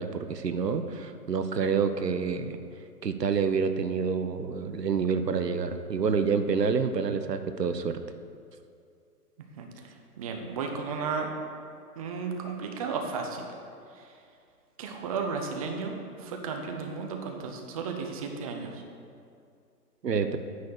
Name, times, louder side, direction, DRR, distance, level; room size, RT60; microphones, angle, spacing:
voice 1, 0.0-2.6 3.0-8.0 20.0-20.4, right 5 dB, 85° right, 9 dB, 0.7 m, -28 dB
voice 2, 9.6-11.3 12.0-13.5 13.9-14.1 14.8-18.8, right 5 dB, 25° right, 3 dB, 0.6 m, -34 dB
9.5 x 4.2 x 6.4 m, 2.4 s
figure-of-eight pair, 125°, 48 cm